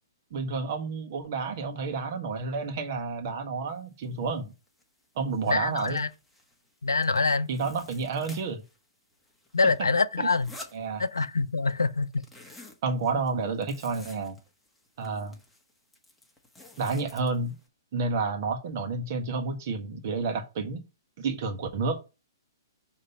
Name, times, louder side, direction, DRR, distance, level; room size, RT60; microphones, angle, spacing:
voice 1, 0.3-4.5 5.1-6.0 7.5-8.6 10.2-10.3 10.7-11.0 12.8-14.4 15.0-15.4 16.8-17.5 17.9-20.8 21.2-22.0, right 4 dB, 45° right, 1.4 m, -30 dB
sound 1, 4.0-4.1 4.5-4.8 5.2-6.7 7.0-8.8 9.1-11.5 11.8-17.7, left 2 dB, 5° left, 1.3 m, -51 dB
voice 2, 5.5-6.1 6.8-7.5 9.5-10.5 11.0-12.3, left 4 dB, 80° left, 0.5 m, -25 dB
6.6 x 3.1 x 5.5 m
figure-of-eight pair, 120°, 2 cm